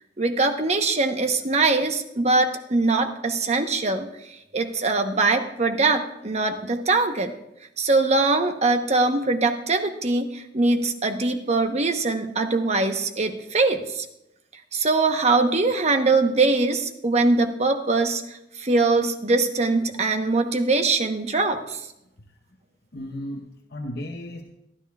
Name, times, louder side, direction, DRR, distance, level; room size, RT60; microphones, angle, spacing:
voice 1, 0.2-7.3 7.8-14.1 14.7-21.8, right 3 dB, 40° right, 6 dB, 1.0 m, -22 dB
voice 2, 22.9-24.4, left 1 dB, 60° left, 2 dB, 1.0 m, -35 dB
22.0 x 13.5 x 2.4 m, 0.86 s
head